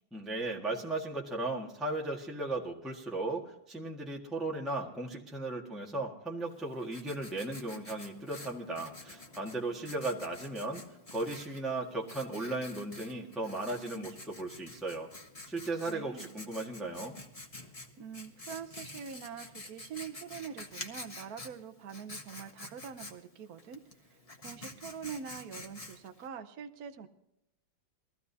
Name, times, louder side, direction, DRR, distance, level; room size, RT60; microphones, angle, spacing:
voice 1, 0.1-10.8 11.1-15.1 15.5-17.1, right 2 dB, ahead, -1 dB, 1.4 m, -36 dB
Writing, 6.5-26.3, left 2 dB, 20° left, 1.3 m, -49 dB
voice 2, 15.9-16.3 17.5-17.7 18.0-27.1, right 7 dB, 60° right, 7 dB, 1.1 m, -44 dB
22.0 x 15.0 x 2.7 m, 0.84 s
omnidirectional pair, 2.1 m